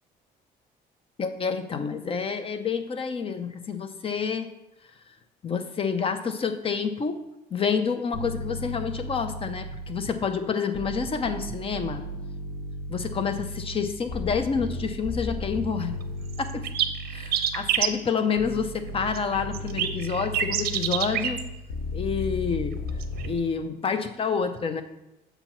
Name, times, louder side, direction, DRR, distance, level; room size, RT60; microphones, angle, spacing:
voice 1, 1.2-4.5 5.4-7.2 7.5-12.0 12.9-16.0 16.4-16.6 17.1-21.4 21.9-22.8 23.2-24.8, left 6 dB, 35° left, 9 dB, 0.6 m, -28 dB
sound 1, 8.1-10.3 10.7-17.9 18.4-23.4, left 1 dB, 90° left, 1.1 m, -35 dB
sound 2, 16.0-16.1 16.3-17.9 19.1-21.4 22.9-23.3, right 10 dB, 65° right, 0.6 m, -26 dB
6.9 x 3.0 x 5.7 m, 0.92 s
cardioid pair, 110°, 17 cm